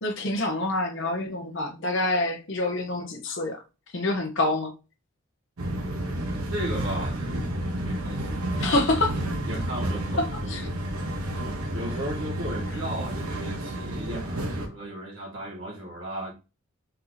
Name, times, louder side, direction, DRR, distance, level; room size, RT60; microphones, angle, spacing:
voice 1, 0.0-3.6 3.9-4.7 8.6-9.1 10.2-10.7, left 2 dB, 55° left, 0.9 m, -26 dB
sound 1, 5.6-14.7, right 1 dB, 90° right, 1.0 m, -30 dB
voice 2, 6.5-7.5 7.8-8.7 9.5-10.6 11.7-16.3, right 1 dB, 60° right, 1.8 m, -35 dB
4.4 x 2.8 x 3.9 m
head